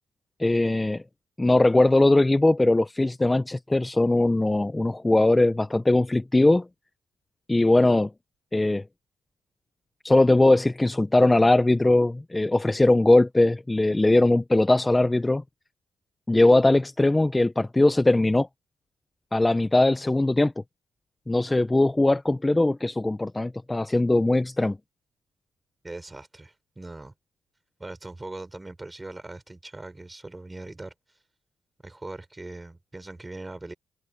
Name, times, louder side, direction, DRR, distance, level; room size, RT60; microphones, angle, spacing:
voice 1, 0.4-1.0 1.4-6.7 7.5-8.1 8.5-8.8 10.0-15.4 16.3-18.5 19.3-20.5 21.3-24.8, left 2 dB, 15° left, 0.8 m, -20 dB
voice 2, 25.8-27.1 27.8-30.9 31.8-33.7, right 2 dB, 15° right, 5.7 m, -40 dB
cardioid pair, 90°, 0 cm